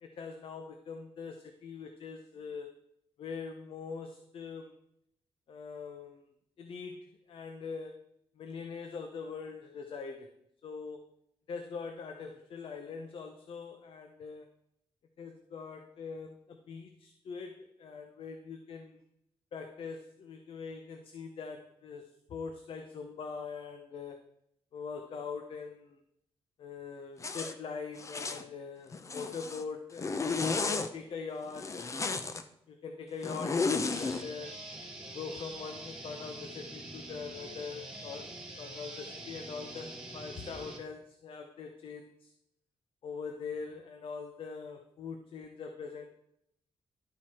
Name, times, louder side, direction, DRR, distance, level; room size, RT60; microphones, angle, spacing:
voice 1, 0.0-2.8 3.2-4.7 5.5-6.2 6.6-8.0 8.4-10.3 10.6-11.0 11.5-14.5 15.2-19.0 19.5-24.2 24.7-26.0 26.6-32.0 32.7-34.5 35.1-38.3 38.6-42.3 43.0-46.1, left 5 dB, 65° left, 6 dB, 0.8 m, -43 dB
Zipper (clothing), 27.2-27.5 28.0-28.4 28.9-29.6 30.0-30.9 31.5-32.4 33.2-34.2, left 4 dB, 30° left, 0.6 m, -33 dB
sound 1, 33.9-40.8, right 2 dB, 5° right, 2.2 m, -45 dB
11.5 x 4.6 x 4.3 m, 0.75 s
cardioid pair, 125°, 10 cm